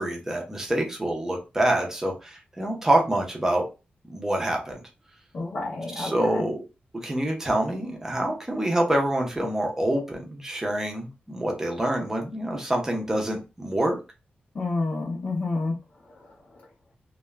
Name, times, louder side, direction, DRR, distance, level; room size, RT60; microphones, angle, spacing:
voice 1, 0.0-3.7 4.1-4.8 5.9-6.6 7.0-14.0, right 1 dB, 15° right, 1 dB, 0.6 m, -26 dB
voice 2, 5.3-6.4 14.5-15.7, left 3 dB, 45° left, -4 dB, 0.6 m, -29 dB
2.3 x 2.2 x 3.1 m, 0.29 s
wide cardioid pair, 175°, 3 cm